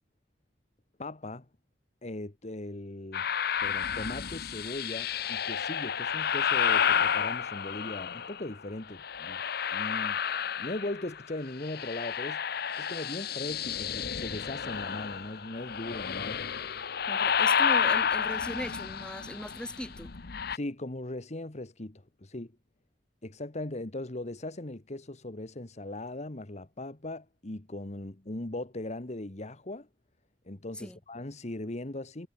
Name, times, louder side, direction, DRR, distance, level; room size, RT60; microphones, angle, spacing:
voice 1, 1.0-1.5 2.0-3.3 3.6-9.4 9.7-10.2 10.6-16.4 20.5-22.5 23.2-29.9 30.4-32.3, left 1 dB, 40° left, 1.5 m, -39 dB
sound 1, 3.1-8.5 9.0-11.2 11.5-20.6, left 7 dB, 60° left, 0.9 m, -30 dB
voice 2, 17.1-20.1 30.8-31.0, equal, 5° left, 4.9 m, -38 dB
head